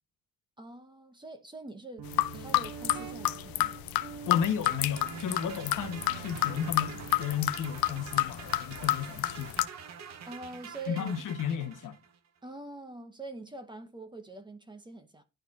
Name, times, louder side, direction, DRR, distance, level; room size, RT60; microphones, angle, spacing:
voice 1, 0.6-3.8 10.3-11.1 12.4-15.2, right 3 dB, 15° right, 0.9 m, -44 dB
Guitar, 2.0-11.5, right 7 dB, 75° right, 1.4 m, -47 dB
sound 1, 2.1-9.7, left 15 dB, 80° left, 0.6 m, -30 dB
voice 2, 4.3-9.6 10.9-12.0, left 8 dB, 60° left, 1.0 m, -33 dB
sound 2, 4.4-12.2, right 6 dB, 50° right, 0.9 m, -47 dB
11.5 x 4.3 x 2.4 m
cardioid pair, 155°, 35 cm